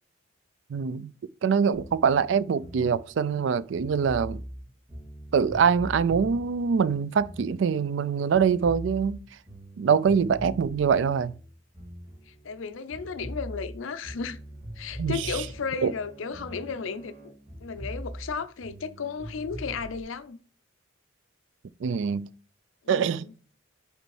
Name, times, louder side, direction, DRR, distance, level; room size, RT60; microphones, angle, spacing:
voice 1, 0.7-1.1 1.4-4.4 5.3-9.2 9.8-11.3 15.0-15.2 15.8-15.9 21.8-22.3 22.9-23.3, right 6 dB, 65° right, 0.3 m, -24 dB
sound 1, 1.7-8.0 8.3-12.6 12.9-17.2 17.5-20.0, equal, 20° right, 2.7 m, -42 dB
voice 2, 12.3-14.4 14.8-17.1 17.6-20.4 22.8-23.3, left 5 dB, 80° left, 0.6 m, -34 dB
Bowed string instrument, 14.3-17.9, right 3 dB, 45° right, 1.3 m, -53 dB
5.2 x 4.3 x 4.7 m
head